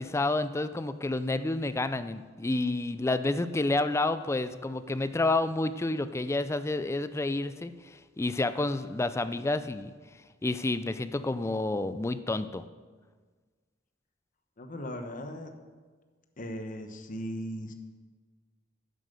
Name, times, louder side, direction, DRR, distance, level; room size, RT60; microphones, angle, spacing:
voice 1, 0.0-7.7 8.2-9.9 10.4-12.6, left 2 dB, 15° left, 12 dB, 0.4 m, -29 dB
voice 2, 14.6-15.5 16.4-17.7, equal, 45° left, 6 dB, 1.0 m, -38 dB
10.5 x 7.5 x 6.7 m, 1.5 s
head